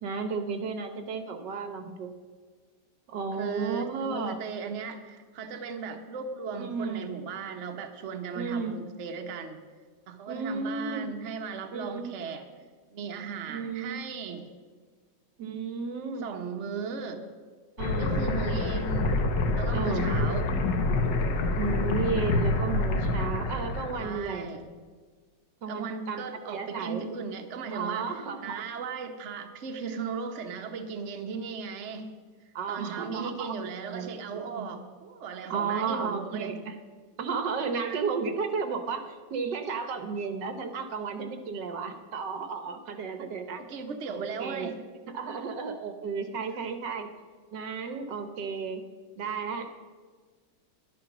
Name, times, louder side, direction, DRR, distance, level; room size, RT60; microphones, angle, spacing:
voice 1, 0.0-2.2 3.1-4.4 6.6-7.1 8.3-8.8 10.3-11.1 11.7-12.1 13.5-14.0 15.4-16.3 17.8-18.9 19.7-20.1 21.6-24.5 25.6-27.0 27.7-28.6 32.5-33.6 33.9-34.7 35.5-36.7 37.2-43.6 44.1-44.7 45.1-47.1 47.5-48.8 49.2-49.7, right 5 dB, 70° right, 8 dB, 1.5 m, -33 dB
voice 2, 3.4-9.6 10.1-12.4 12.9-14.4 16.2-17.3 18.0-19.1 19.6-20.5 24.0-24.6 25.7-32.1 32.7-36.5 43.6-44.8, right 5 dB, 45° right, 4 dB, 1.1 m, -37 dB
sound 1, 17.8-24.2, left 2 dB, 70° left, 1.7 m, -27 dB
11.0 x 10.0 x 6.0 m, 1.5 s
omnidirectional pair, 2.0 m